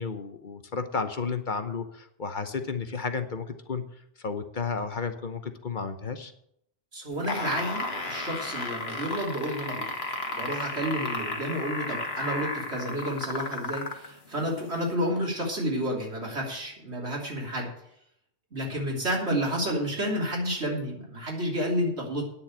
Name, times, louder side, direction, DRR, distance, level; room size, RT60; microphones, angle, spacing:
voice 1, 0.0-3.8 4.2-6.3, left 5 dB, 50° left, 9 dB, 1.0 m, -32 dB
voice 2, 6.9-9.9 10.3-17.7 18.5-22.3, equal, 85° right, -2 dB, 3.6 m, -30 dB
sound 1, 7.1-14.1 14.9-15.0, left 2 dB, 70° left, 1.8 m, -33 dB
9.7 x 7.0 x 8.9 m, 0.74 s
omnidirectional pair, 1.1 m